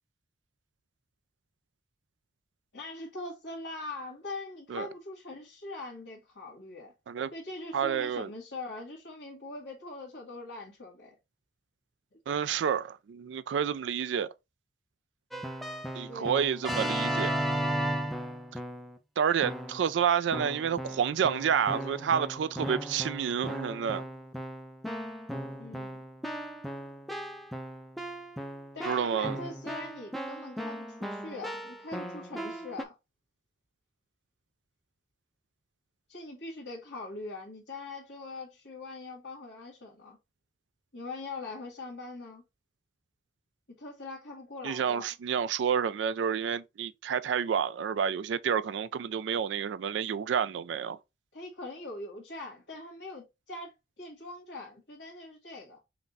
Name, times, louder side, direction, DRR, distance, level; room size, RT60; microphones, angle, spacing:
voice 1, 2.7-6.9 7.3-11.1 16.1-16.4 25.6-26.0 28.7-32.9 36.1-40.2 40.9-42.4 43.8-45.1 51.3-55.8, left 2 dB, 80° left, 1.7 m, -42 dB
voice 2, 7.7-8.3 12.3-14.3 15.9-17.3 19.2-24.0 28.8-29.4 44.6-51.0, right 7 dB, 80° right, 0.3 m, -29 dB
Keyboard (musical), 15.3-19.0 19.4-19.9 20.3-32.8, equal, ahead, 0.5 m, -36 dB
5.7 x 2.2 x 3.9 m
head